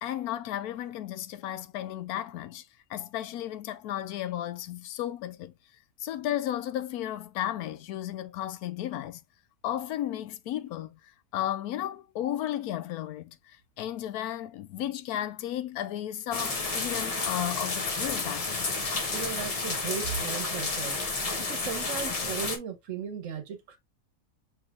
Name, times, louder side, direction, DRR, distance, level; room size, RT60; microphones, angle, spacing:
voice 1, 0.0-5.5 6.0-9.2 9.6-18.7, left 12 dB, 90° left, 1.1 m, -34 dB
sound 1, 16.3-22.6, left 3 dB, 35° left, 0.6 m, -31 dB
voice 2, 19.1-21.0 21.4-23.8, right 7 dB, 60° right, 1.3 m, -36 dB
6.1 x 3.3 x 2.4 m
omnidirectional pair, 1.5 m